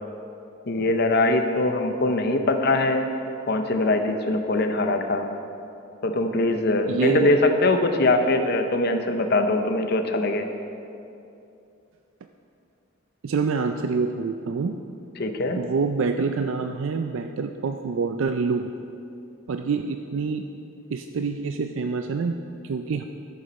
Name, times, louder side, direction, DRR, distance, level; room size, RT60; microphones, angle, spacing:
voice 1, 0.7-3.1 3.5-5.3 6.0-10.5 15.2-15.6, left 2 dB, 50° left, 6 dB, 0.7 m, -22 dB
voice 2, 6.9-7.3 13.2-14.8 15.5-18.7 19.5-20.6 20.9-23.0, right 4 dB, 75° right, 6 dB, 0.4 m, -26 dB
12.5 x 6.9 x 5.3 m, 2.6 s
head